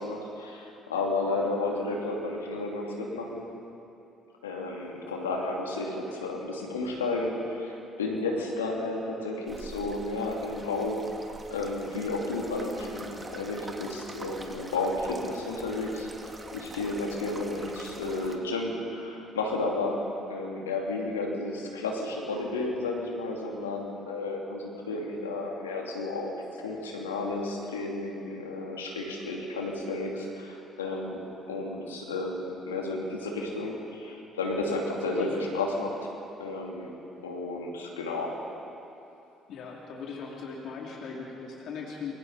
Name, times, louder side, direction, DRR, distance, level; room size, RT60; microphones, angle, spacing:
voice 1, 0.0-3.5 4.4-11.0 11.5-16.1 16.5-20.0 20.3-31.2 31.5-36.1 36.4-36.9 37.2-38.3, left 2 dB, 90° left, -1 dB, 2.8 m, -32 dB
sound 1, 9.5-18.4, right 2 dB, 25° right, 2.4 m, -45 dB
voice 2, 39.5-42.1, left 5 dB, 60° left, -2 dB, 3.2 m, -38 dB
29.5 x 22.5 x 4.3 m, 2.8 s
hypercardioid pair, 50°, 0 cm